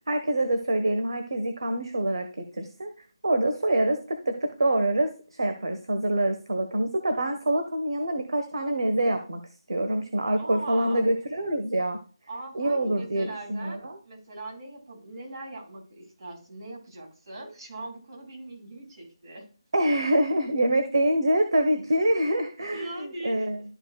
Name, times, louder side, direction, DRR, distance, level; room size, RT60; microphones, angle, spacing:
voice 1, 0.1-2.9 3.2-9.4 9.7-12.0 12.5-14.0 19.7-23.6, right 1 dB, 75° right, 6 dB, 1.2 m, -25 dB
voice 2, 10.4-11.1 12.3-19.5 22.7-23.6, right 2 dB, 55° right, 0 dB, 3.6 m, -40 dB
13.0 x 5.1 x 2.3 m, 0.38 s
figure-of-eight pair, 165°, 3 cm